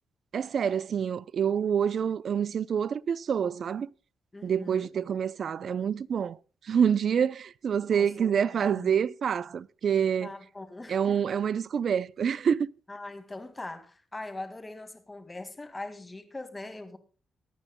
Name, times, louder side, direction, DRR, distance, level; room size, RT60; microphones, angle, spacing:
voice 1, 0.3-3.9 4.4-6.4 6.6-10.3 10.9-12.7, right 7 dB, 50° right, 0.5 m, -27 dB
voice 2, 4.3-4.9 7.9-8.9 10.2-11.0 12.9-17.0, left 2 dB, 15° left, 1.9 m, -41 dB
23.5 x 9.9 x 2.2 m
cardioid pair, 145°, 0 cm